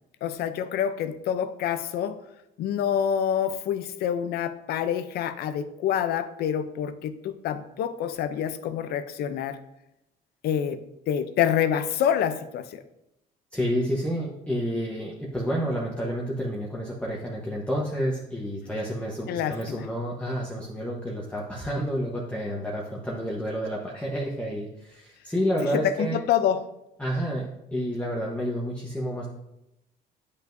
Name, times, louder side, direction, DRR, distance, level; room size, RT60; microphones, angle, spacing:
voice 1, 0.2-2.2 2.6-9.6 10.4-10.8 11.1-12.8 19.3-19.8 25.8-26.6, left 9 dB, 70° left, 11 dB, 0.6 m, -27 dB
voice 2, 13.5-26.2 27.0-29.3, equal, 5° left, -4 dB, 1.0 m, -29 dB
9.8 x 5.4 x 2.6 m, 0.87 s
cardioid pair, 110°, 17 cm